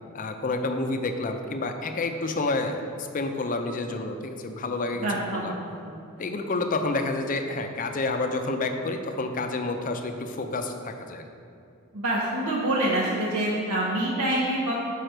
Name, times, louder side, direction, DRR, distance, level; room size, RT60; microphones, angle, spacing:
voice 1, 0.1-5.5 6.2-11.2, left 2 dB, 40° left, 6 dB, 0.5 m, -29 dB
voice 2, 4.9-5.5 5.8-6.0 11.9-14.8, right 1 dB, 85° right, -5 dB, 0.8 m, -26 dB
6.5 x 5.0 x 4.5 m, 2.6 s
head